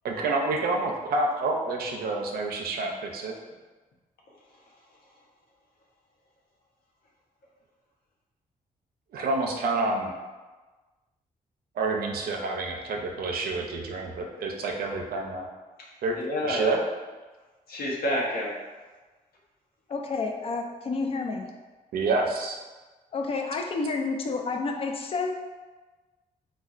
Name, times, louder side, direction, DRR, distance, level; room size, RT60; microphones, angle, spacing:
voice 1, 0.0-3.4 9.1-10.1 11.8-15.5 16.0-16.2 16.4-16.8 21.9-22.6, right 3 dB, 85° right, 2 dB, 0.5 m, -28 dB
voice 2, 4.5-5.1 15.8-16.8 17.7-18.5, left 1 dB, 85° left, -3 dB, 0.8 m, -31 dB
voice 3, 19.9-21.5 23.1-25.3, left 4 dB, 40° left, 3 dB, 0.4 m, -30 dB
4.1 x 2.2 x 2.4 m, 1.3 s
cardioid pair, 115°, 15 cm